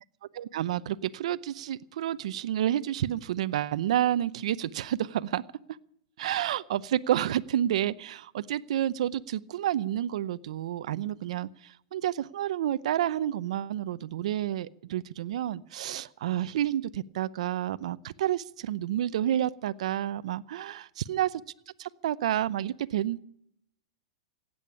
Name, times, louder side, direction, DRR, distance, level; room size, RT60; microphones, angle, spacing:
voice 1, 0.3-5.4 6.2-20.8 21.1-21.3 21.8-23.3, right 11 dB, 75° right, 15 dB, 0.7 m, -30 dB
16.5 x 8.7 x 9.8 m, 0.72 s
hypercardioid pair, 135°, 4 cm